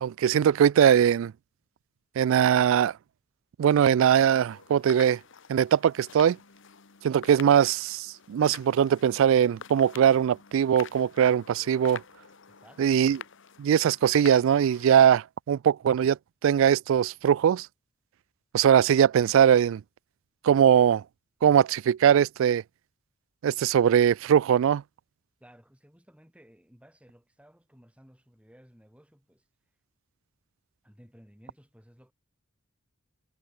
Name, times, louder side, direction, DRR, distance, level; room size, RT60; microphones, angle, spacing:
voice 1, 0.0-1.3 2.2-2.9 3.6-5.2 5.5-6.4 7.0-12.0 12.8-13.2 13.6-17.7 18.5-19.8 20.4-21.0 21.4-22.6 23.4-24.8, right 8 dB, 70° right, 0.3 m, -21 dB
sound 1, 4.3-15.1, left 6 dB, 65° left, 1.5 m, -47 dB
voice 2, 12.5-13.0 25.4-29.5 30.8-32.1, equal, 5° right, 6.9 m, -56 dB
head